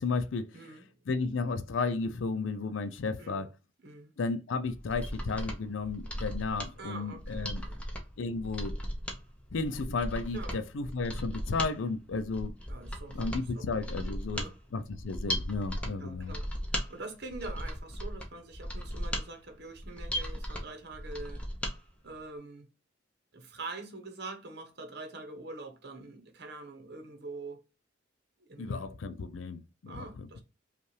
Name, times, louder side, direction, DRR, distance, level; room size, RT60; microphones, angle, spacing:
voice 1, 0.0-0.5 1.1-3.5 4.2-7.6 8.2-8.7 9.5-12.5 13.1-14.5 14.7-16.3 28.6-30.3, left 4 dB, 90° left, 0.5 m, -33 dB
voice 2, 0.5-0.9 3.2-3.5 3.8-4.1 6.8-7.8 10.3-10.6 12.7-13.2 13.6-13.7 14.0-14.6 16.0-16.5 16.9-21.4 22.0-22.7 23.3-27.6 28.5-28.8 29.9-30.4, right 3 dB, 60° right, 1.0 m, -44 dB
Mechanisms, 4.7-21.8 22.1-22.2, equal, 5° left, 0.7 m, -37 dB
5.3 x 2.5 x 3.2 m
head